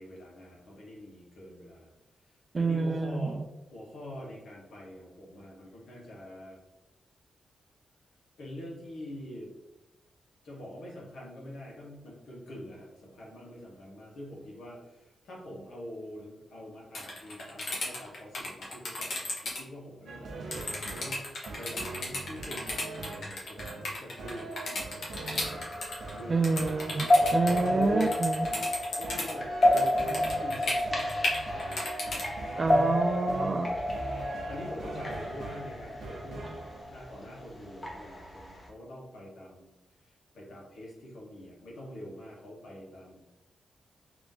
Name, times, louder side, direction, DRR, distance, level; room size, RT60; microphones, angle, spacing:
voice 1, 0.0-1.9 2.5-3.4 3.7-6.6 8.4-9.5 10.4-25.7 26.1-26.7 27.4-28.2 29.0-31.9 32.5-36.5 36.8-39.7 40.0-43.3, left 1 dB, 85° left, -4 dB, 1.5 m, -44 dB
voice 2, 2.5-3.5 26.3-28.5 32.6-33.8, right 3 dB, 40° right, 8 dB, 0.4 m, -28 dB
sound 1, 16.9-19.6 20.5-29.3 29.6-32.2, left 2 dB, 70° left, 1.2 m, -34 dB
sound 2, 20.1-36.8, right 3 dB, 75° right, 0.8 m, -42 dB
sound 3, 25.4-38.7, left 1 dB, 30° left, 0.9 m, -30 dB
3.7 x 2.9 x 3.6 m, 0.96 s
cardioid pair, 80°, 0 cm